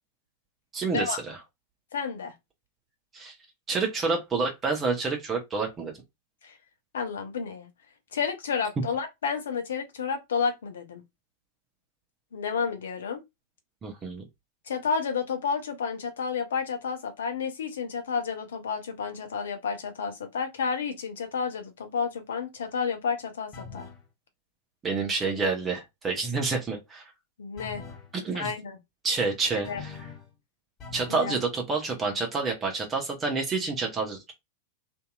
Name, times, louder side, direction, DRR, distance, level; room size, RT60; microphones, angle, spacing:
voice 1, 0.7-1.4 3.1-3.3 3.7-5.9 13.8-14.2 24.8-27.1 28.2-28.5 29.0-30.0 30.9-34.3, right 4 dB, 20° right, 0.8 m, -28 dB
voice 2, 1.9-2.3 6.4-6.6 6.9-7.7 8.1-11.0 12.3-13.2 14.7-23.9 27.4-27.8 28.3-28.8 29.6-29.8 31.1-31.4, left 6 dB, 65° left, 0.7 m, -31 dB
sound 1, 23.5-24.0 27.6-28.1 29.6-30.3 30.8-31.3, left 5 dB, 35° left, 1.0 m, -42 dB
2.7 x 2.6 x 2.3 m
figure-of-eight pair, 90°, 0 cm